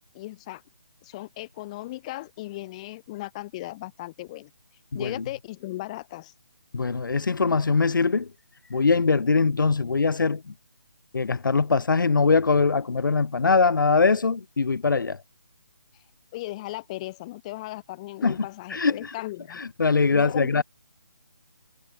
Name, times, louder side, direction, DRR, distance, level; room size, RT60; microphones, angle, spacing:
voice 1, 0.1-0.6 1.0-4.5 4.9-6.3 16.3-19.6 20.1-20.6, left 17 dB, 20° left, 0.6 m, -37 dB
voice 2, 6.7-8.3 8.7-10.4 11.1-15.2 18.2-18.3 18.7-18.9 19.8-20.6, left 4 dB, 85° left, 0.7 m, -22 dB
figure-of-eight pair, 160°, 11 cm